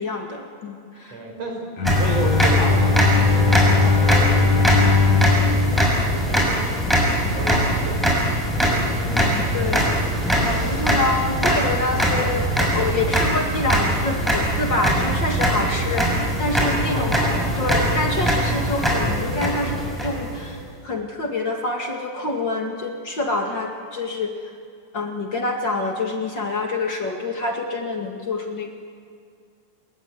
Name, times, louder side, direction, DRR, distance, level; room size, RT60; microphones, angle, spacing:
voice 1, 0.0-1.2 9.1-17.1 17.6-24.3 24.9-28.7, left 2 dB, 40° left, 2 dB, 2.7 m, -27 dB
voice 2, 1.1-1.7 1.9-4.7 5.5-6.7 7.3-8.1 8.3-8.5 16.6-17.6, right 1 dB, 60° right, 2 dB, 5.8 m, -31 dB
Bowed string instrument, 1.8-7.0, left 4 dB, 70° left, 4.9 m, -20 dB
sound 1, 1.8-20.6, equal, ahead, 6.2 m, -22 dB
28.0 x 22.0 x 9.6 m, 2.2 s
omnidirectional pair, 3.4 m